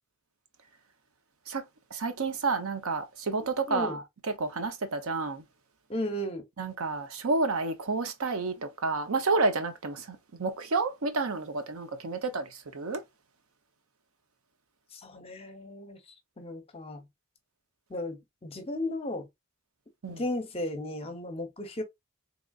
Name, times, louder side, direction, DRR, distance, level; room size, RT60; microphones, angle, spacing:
voice 1, 1.9-5.4 6.6-13.0 20.0-20.2, right 3 dB, 70° right, 0.6 m, -30 dB
voice 2, 3.7-4.0 5.9-6.5 14.9-16.0 16.4-17.0 17.9-19.2 20.2-21.8, left 1 dB, 25° left, 0.7 m, -35 dB
3.7 x 3.0 x 2.3 m
head